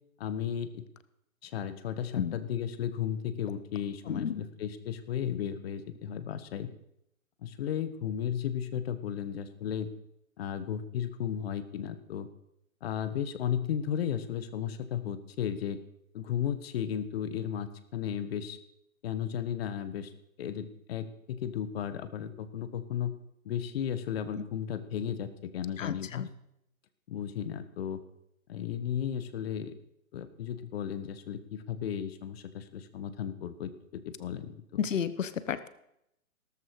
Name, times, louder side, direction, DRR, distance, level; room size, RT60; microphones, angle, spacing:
voice 1, 0.2-0.8 1.4-6.7 7.4-9.9 10.4-12.3 12.8-15.8 16.1-18.6 19.0-20.1 20.4-23.1 23.4-26.3 27.1-28.0 28.5-29.7 30.1-34.8, left 9 dB, 45° left, 11 dB, 1.7 m, -34 dB
voice 2, 4.1-4.4 25.8-26.3 34.8-35.7, left 8 dB, 60° left, 14 dB, 1.2 m, -32 dB
17.0 x 13.5 x 4.9 m, 0.79 s
figure-of-eight pair, 130°, 42 cm